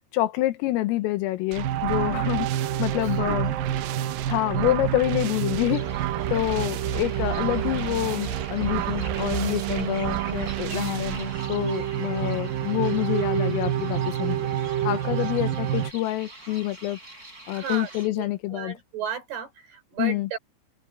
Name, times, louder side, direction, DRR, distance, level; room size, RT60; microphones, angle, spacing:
voice 1, 0.1-2.5 2.8-3.5 4.3-14.5 14.9-17.0 17.5-18.8 20.0-20.3, left 16 dB, 80° left, 3.7 m, -27 dB
sound 1, 1.5-11.4, right 16 dB, 85° right, 3.7 m, -34 dB
sound 2, 1.6-15.9, right 10 dB, 65° right, 2.3 m, -28 dB
voice 2, 3.0-3.6 4.5-4.7 15.0-15.2 17.5-20.4, right 8 dB, 50° right, 6.0 m, -35 dB
sound 3, 5.7-18.1, right 2 dB, 15° right, 6.2 m, -45 dB
omnidirectional pair, 6.0 m